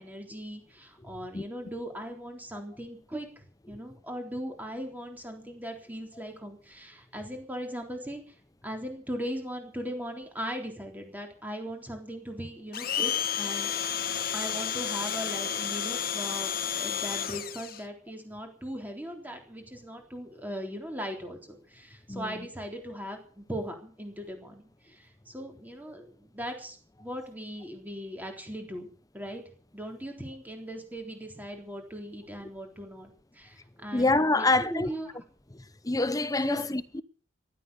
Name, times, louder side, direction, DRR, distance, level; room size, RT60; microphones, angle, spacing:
voice 1, 0.0-8.2 8.6-13.1 13.4-13.7 14.3-16.5 16.8-21.4 21.7-28.9 29.1-29.4 29.7-35.2 36.4-36.6, equal, 10° right, 3.6 m, -39 dB
Domestic sounds home sounds, 12.7-17.8, left 8 dB, 45° left, 1.4 m, -31 dB
voice 2, 22.1-22.5 33.9-34.9 35.5-37.0, left 2 dB, 15° left, 0.7 m, -26 dB
16.0 x 12.0 x 6.9 m
head